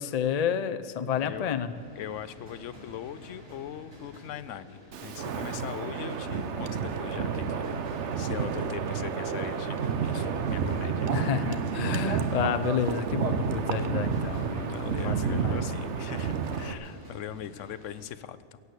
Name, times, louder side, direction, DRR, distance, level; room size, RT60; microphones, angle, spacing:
voice 1, 0.0-1.7 11.1-15.5, left 8 dB, 50° left, 10 dB, 0.5 m, -30 dB
sound 1, 0.6-18.1, equal, 80° right, 5.2 m, -51 dB
voice 2, 1.2-1.6 2.0-11.1 14.7-18.6, left 10 dB, 75° left, 15 dB, 0.9 m, -41 dB
Wind, 4.9-16.7, right 6 dB, 65° right, 1.1 m, -30 dB
16.5 x 8.3 x 8.2 m, 2.5 s
omnidirectional pair, 1.4 m